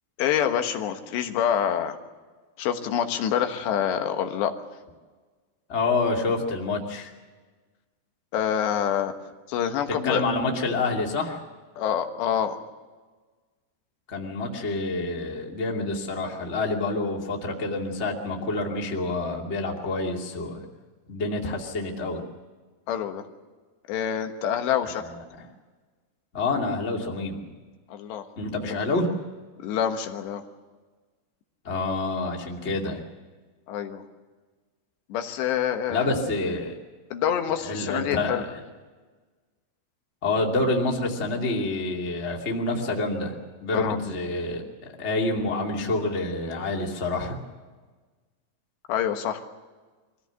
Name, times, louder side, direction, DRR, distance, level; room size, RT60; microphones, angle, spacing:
voice 1, 0.2-2.0 2.6-4.5 8.3-9.1 9.5-10.2 11.8-12.6 22.9-23.2 23.9-25.0 27.9-28.3 28.6-28.8 29.6-30.4 33.7-34.0 35.1-36.1 37.1-38.4 43.7-44.0 48.9-49.4, left 9 dB, 85° left, 6 dB, 3.5 m, -26 dB
voice 2, 5.7-7.1 9.9-11.4 14.1-20.6 21.1-22.2 24.8-25.2 26.3-27.4 28.4-29.1 31.6-33.0 35.9-36.7 37.6-38.6 40.2-47.4, left 2 dB, 20° left, 0 dB, 2.0 m, -28 dB
24.0 x 16.0 x 8.1 m, 1.4 s
omnidirectional pair, 4.8 m